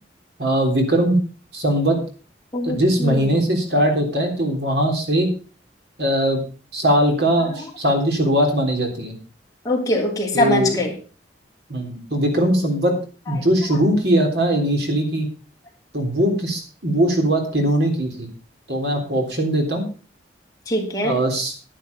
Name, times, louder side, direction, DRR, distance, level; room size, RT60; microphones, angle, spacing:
voice 1, 0.4-1.2 1.5-2.0 2.6-5.3 6.0-6.4 6.7-9.2 10.3-10.8 11.7-12.9 13.3-15.3 15.9-18.3 18.7-19.9 21.0-21.5, right 1 dB, 65° right, 3 dB, 3.7 m, -20 dB
voice 2, 2.5-3.5 9.6-10.9 20.7-21.1, left 1 dB, 20° left, -1 dB, 3.1 m, -22 dB
10.5 x 10.5 x 5.3 m, 0.36 s
head